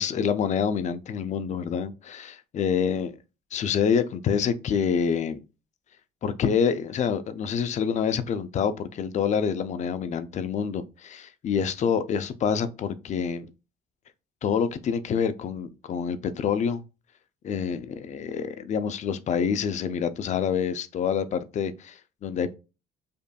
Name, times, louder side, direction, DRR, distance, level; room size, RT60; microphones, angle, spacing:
voice 1, 0.0-3.1 3.5-5.4 6.2-13.5 14.4-16.8 17.4-22.5, left 7 dB, 45° left, 0.5 m, -27 dB
5.2 x 2.5 x 2.2 m
cardioid pair, 110°, 17 cm